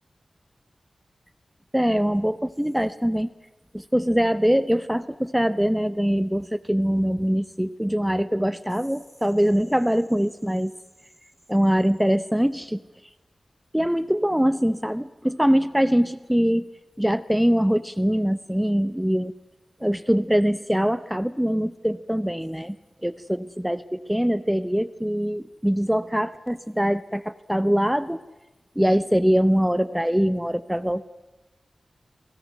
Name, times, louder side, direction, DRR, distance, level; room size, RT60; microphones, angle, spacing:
voice 1, 1.7-3.3 3.7-10.7 11.5-12.8 13.7-16.7 17.0-19.3 19.8-22.8 23.0-28.2 28.8-31.0, equal, 5° right, 15 dB, 0.8 m, -23 dB
23.0 x 18.0 x 9.4 m, 1.1 s
cardioid pair, 40°, 0 cm